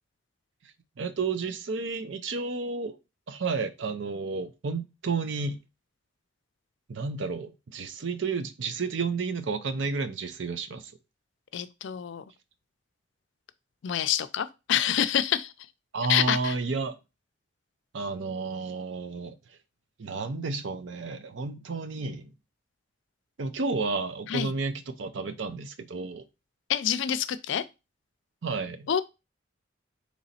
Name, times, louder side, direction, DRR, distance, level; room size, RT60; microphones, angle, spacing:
voice 1, 1.0-2.9 3.3-5.6 6.9-10.9 15.9-16.9 17.9-19.3 20.0-22.3 23.4-26.2 28.4-28.9, right 4 dB, 75° right, 0.6 m, -31 dB
voice 2, 11.5-12.2 13.8-15.5 16.1-16.5 24.3-24.5 26.7-27.6 28.9-29.0, left 9 dB, 70° left, 0.4 m, -27 dB
4.0 x 3.1 x 4.1 m
head